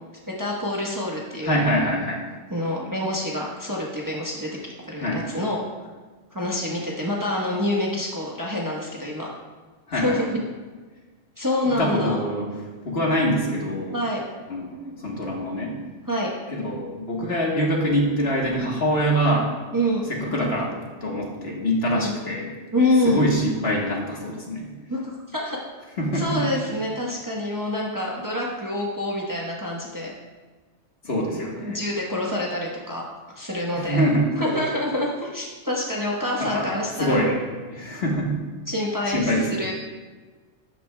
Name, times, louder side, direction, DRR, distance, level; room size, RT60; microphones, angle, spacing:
voice 1, 0.3-1.6 2.5-5.6 6.3-9.3 9.9-10.4 11.4-12.2 13.9-14.2 16.1-16.3 19.7-20.1 21.9-22.1 22.7-23.3 24.9-25.6 26.1-30.1 31.3-34.0 34.4-37.2 38.7-39.3 39.6-39.7, left 1 dB, 15° right, -4 dB, 1.1 m, -26 dB
voice 2, 1.4-2.2 5.0-5.2 9.9-10.2 11.6-12.5 12.8-14.0 14.5-15.7 16.5-19.5 20.1-20.7 21.0-22.5 23.0-24.7 26.0-26.4 31.0-31.8 33.7-34.4 36.4-37.4 37.7-38.3 39.1-39.6, equal, 55° left, -2 dB, 1.7 m, -24 dB
12.5 x 8.7 x 2.3 m, 1.4 s
omnidirectional pair, 1.3 m